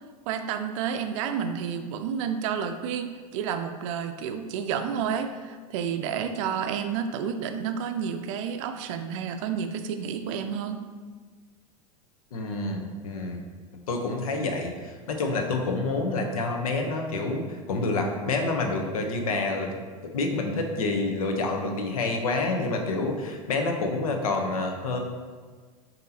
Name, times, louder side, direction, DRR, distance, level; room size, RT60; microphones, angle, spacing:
voice 1, 0.3-10.8, right 7 dB, 60° right, 8 dB, 0.4 m, -30 dB
voice 2, 12.3-13.4 13.9-19.7 20.1-25.0, left 3 dB, 75° left, 4 dB, 0.7 m, -28 dB
6.6 x 2.8 x 2.8 m, 1.5 s
hypercardioid pair, 90°, 18 cm